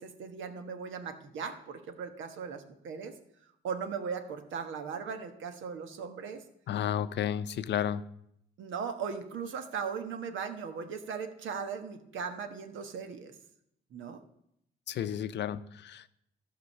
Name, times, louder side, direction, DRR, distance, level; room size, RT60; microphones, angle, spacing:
voice 1, 0.0-3.1 3.6-6.4 8.6-13.3 13.9-14.2, right 6 dB, 75° right, 8 dB, 1.3 m, -38 dB
voice 2, 6.7-8.0 14.9-16.1, left 10 dB, 60° left, 13 dB, 0.6 m, -32 dB
13.0 x 5.2 x 6.6 m, 0.75 s
cardioid pair, 90°, 20 cm